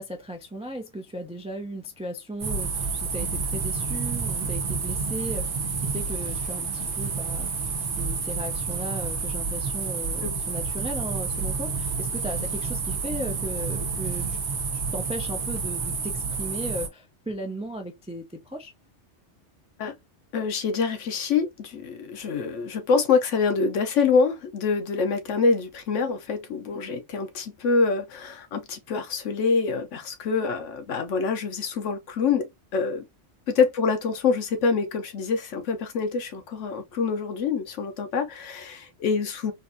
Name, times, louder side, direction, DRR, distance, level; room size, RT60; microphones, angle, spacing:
voice 1, 0.0-7.7 8.0-14.4 14.7-18.7, equal, 10° right, 0.4 m, -36 dB
sound 1, 2.4-16.9, right 4 dB, 60° right, 1.1 m, -29 dB
voice 2, 20.3-33.0 33.5-39.5, left 5 dB, 90° left, 1.1 m, -25 dB
3.9 x 2.5 x 2.6 m
omnidirectional pair, 1.2 m